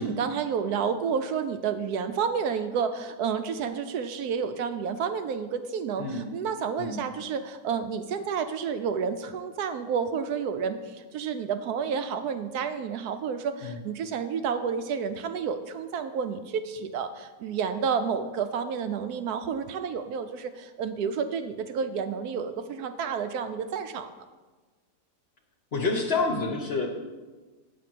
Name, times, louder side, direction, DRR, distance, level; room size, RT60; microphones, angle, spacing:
voice 1, 0.0-24.1, right 6 dB, 75° right, 9 dB, 1.0 m, -30 dB
voice 2, 25.7-26.9, left 3 dB, 45° left, 2 dB, 0.9 m, -28 dB
8.4 x 4.9 x 7.5 m, 1.3 s
omnidirectional pair, 1.8 m